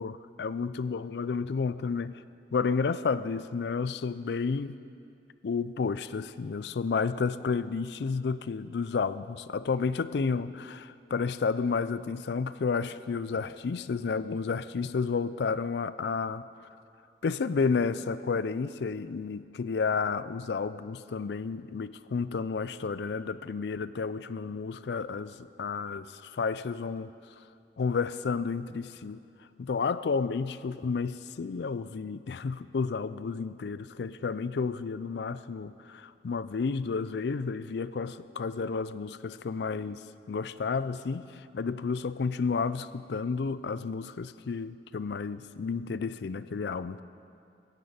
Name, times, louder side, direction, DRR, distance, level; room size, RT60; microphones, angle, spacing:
voice 1, 0.0-2.2 2.5-4.8 5.4-16.5 17.2-27.1 27.8-29.2 29.6-47.0, left 5 dB, 70° left, 15 dB, 0.4 m, -31 dB
11.0 x 9.9 x 8.0 m, 2.5 s
head